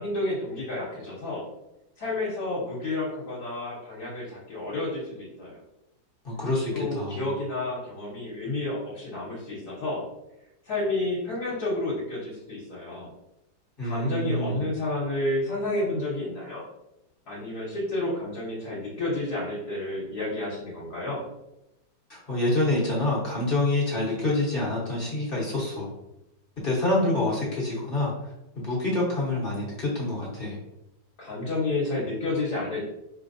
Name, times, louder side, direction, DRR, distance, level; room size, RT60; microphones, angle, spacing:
voice 1, 0.0-1.4 2.0-5.6 6.7-10.0 10.6-13.1 13.8-16.6 17.3-21.3 31.2-32.8, left 2 dB, 60° left, -7 dB, 1.4 m, -30 dB
voice 2, 6.2-7.3 13.8-14.6 22.1-25.9 26.6-28.1 28.5-30.6, left 2 dB, 35° left, -6 dB, 1.0 m, -27 dB
4.4 x 3.3 x 2.6 m, 0.91 s
omnidirectional pair, 2.0 m